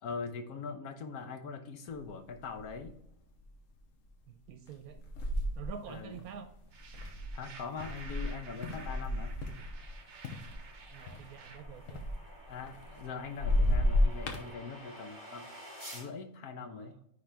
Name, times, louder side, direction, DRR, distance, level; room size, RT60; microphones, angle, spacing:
voice 1, 0.0-2.9 5.9-6.2 7.3-9.3 12.5-15.5 15.9-16.9, left 5 dB, 90° left, 7 dB, 1.4 m, -42 dB
sound 1, 2.0-2.1 2.5-3.0 3.5-3.8 4.7-9.9 10.2-13.1 13.3-14.5, left 1 dB, 65° left, 1.3 m, -32 dB
voice 2, 4.3-5.0 5.6-6.5 10.9-12.0 16.6-17.0, right 8 dB, 85° right, 7 dB, 1.1 m, -47 dB
sound 2, 6.7-11.6, right 4 dB, 55° right, 1.1 m, -52 dB
sound 3, 7.9-16.1, right 1 dB, 10° right, 2.1 m, -52 dB
9.8 x 3.8 x 3.4 m, 0.74 s
omnidirectional pair, 1.5 m